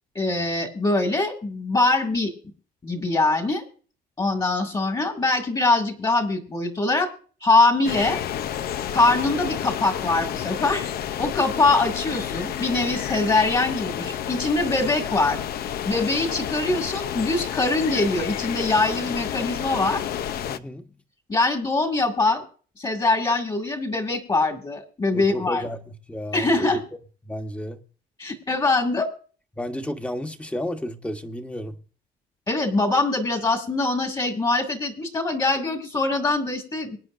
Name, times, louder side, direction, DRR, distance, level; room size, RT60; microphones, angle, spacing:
voice 1, 0.1-2.3 2.8-3.6 4.2-7.1 7.4-8.2 8.9-10.9 11.2-15.4 15.9-20.0 21.3-22.4 22.8-25.6 26.3-26.8 28.2-29.1 32.5-37.0, left 2 dB, 25° left, 2.3 m, -23 dB
sound 1, 7.8-20.6, left 10 dB, 65° left, 0.8 m, -30 dB
voice 2, 20.5-20.9 25.1-26.8 27.2-27.8 29.6-31.7, equal, 5° left, 1.3 m, -32 dB
24.0 x 9.6 x 2.6 m
cardioid pair, 110°, 17 cm